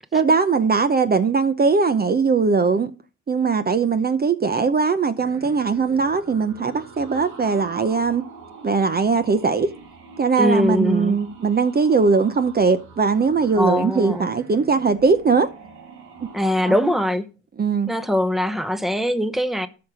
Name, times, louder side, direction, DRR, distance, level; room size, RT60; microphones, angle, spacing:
voice 1, 0.1-2.9 3.3-8.2 8.6-9.7 10.2-15.5 16.6-16.8 17.6-17.9, right 5 dB, 30° right, 0.7 m, -20 dB
sound 1, 5.2-16.9, right 4 dB, 90° right, 2.2 m, -44 dB
voice 2, 10.4-11.2 13.5-14.3 16.3-17.3 17.9-19.7, left 1 dB, ahead, 0.9 m, -22 dB
13.0 x 5.7 x 5.0 m
cardioid pair, 90°, 30 cm